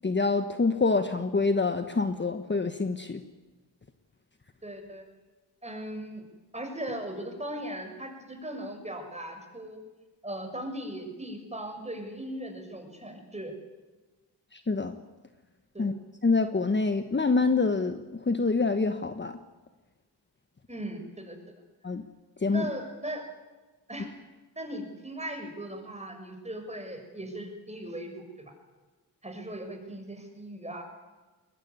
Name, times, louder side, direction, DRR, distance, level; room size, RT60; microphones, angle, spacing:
voice 1, 0.0-3.2 14.5-15.0 15.8-15.9 16.2-19.4 21.8-22.0 22.4-22.7, left 3 dB, 25° left, 9 dB, 1.4 m, -26 dB
voice 2, 4.6-5.0 5.6-6.2 6.5-9.8 10.2-13.5 15.7-15.9 20.7-21.4 22.5-23.2 23.9-24.1 24.5-28.5 29.2-30.8, right 1 dB, 15° right, 5 dB, 6.7 m, -38 dB
21.0 x 20.5 x 9.7 m, 1.2 s
cardioid pair, 75°, 40 cm